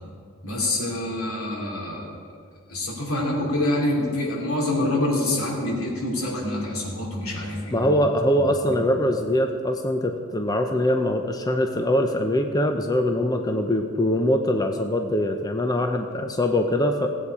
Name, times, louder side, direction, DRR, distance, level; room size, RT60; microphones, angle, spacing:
voice 1, 0.4-2.1 2.7-7.9 8.4-8.9, left 1 dB, 80° left, -3 dB, 3.1 m, -26 dB
voice 2, 7.7-17.1, left 1 dB, 20° left, 4 dB, 0.6 m, -23 dB
17.5 x 8.5 x 4.8 m, 2.2 s
head